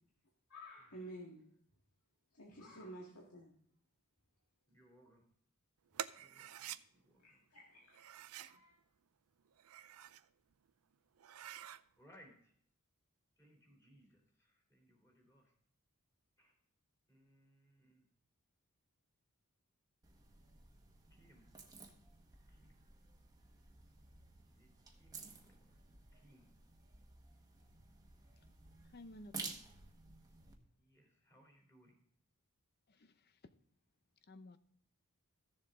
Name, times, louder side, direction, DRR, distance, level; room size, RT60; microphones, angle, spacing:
voice 1, 0.5-1.5 2.3-3.5 7.2-8.0 8.3-8.8, right 1 dB, 80° left, 1.9 m, -52 dB
voice 2, 2.5-2.9 4.7-5.2 6.2-7.4 12.0-12.5 13.4-15.5 16.4-16.5 17.1-18.0 21.1-21.5 22.5-22.8 24.5-24.7 25.0-25.8 26.1-26.5 30.8-32.0, equal, 15° left, 3.4 m, -66 dB
sound 1, 5.9-6.8 7.9-8.6 9.5-10.3 10.7-10.8 11.2-11.8, right 10 dB, 70° right, 0.5 m, -47 dB
sound 2, 20.0-30.5, right 4 dB, 15° right, 1.4 m, -54 dB
voice 3, 28.8-29.6 32.9-33.5 34.3-34.6, left 1 dB, 45° left, 0.7 m, -56 dB
15.0 x 7.2 x 3.7 m
head